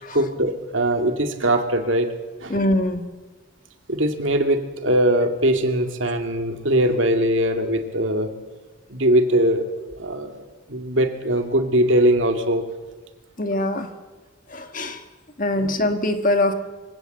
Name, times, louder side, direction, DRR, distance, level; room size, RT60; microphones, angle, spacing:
voice 1, 0.1-2.1 2.4-2.5 3.9-8.3 8.9-10.4 10.7-12.6 15.6-15.7, right 1 dB, 65° right, 5 dB, 2.4 m, -21 dB
voice 2, 2.5-3.0 13.4-13.9 14.5-15.0 15.4-16.5, left 1 dB, 40° left, 7 dB, 1.7 m, -23 dB
24.5 x 16.5 x 7.9 m, 1.2 s
head